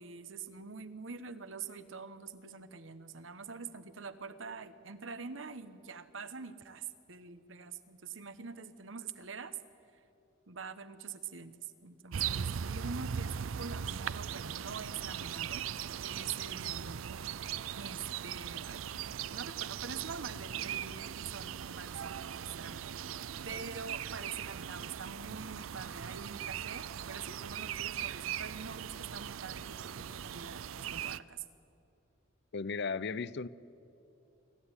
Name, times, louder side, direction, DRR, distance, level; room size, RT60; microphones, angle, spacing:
voice 1, 0.0-9.6 9.9-10.0 10.5-15.6 16.0-17.0 17.7-18.9 19.3-22.8 23.4-31.4, right 5 dB, 70° right, 12 dB, 1.1 m, -45 dB
sound 1, 12.1-31.2, right 8 dB, 90° right, 0.5 m, -39 dB
voice 2, 32.5-33.5, left 4 dB, 55° left, 18 dB, 0.5 m, -36 dB
25.0 x 14.0 x 9.8 m, 2.8 s
head